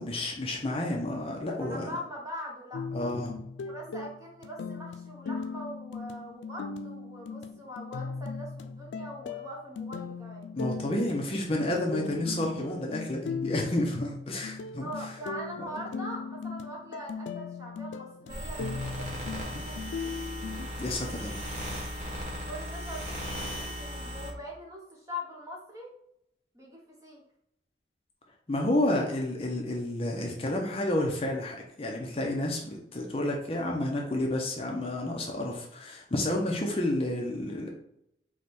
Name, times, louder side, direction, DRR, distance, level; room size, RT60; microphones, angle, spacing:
voice 1, 0.0-1.9 2.9-3.4 10.5-14.9 19.5-19.6 20.8-21.4 28.5-37.7, left 1 dB, 30° left, 0 dB, 0.6 m, -30 dB
voice 2, 1.6-2.9 3.6-10.5 14.8-20.2 22.5-25.9 26.5-27.2, equal, 20° right, -2 dB, 1.0 m, -42 dB
sound 1, 2.7-20.7, left 4 dB, 85° left, 0.3 m, -38 dB
sound 2, 18.3-24.3, equal, 40° right, 1.1 m, -37 dB
4.7 x 2.2 x 4.2 m, 0.75 s
head